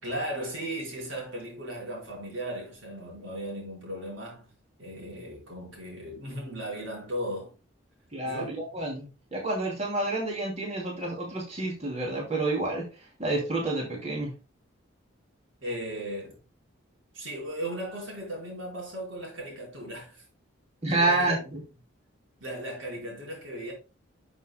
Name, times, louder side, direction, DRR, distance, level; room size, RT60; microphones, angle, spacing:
voice 1, 0.0-4.5 4.8-7.5 8.2-8.6 15.6-16.4 17.1-20.2 20.8-21.6 22.4-23.7, right 1 dB, 75° right, 4.5 m, -36 dB
voice 2, 8.1-12.8 13.2-14.3 20.8-21.6, right 2 dB, 30° right, 2.6 m, -29 dB
11.5 x 6.2 x 2.2 m
head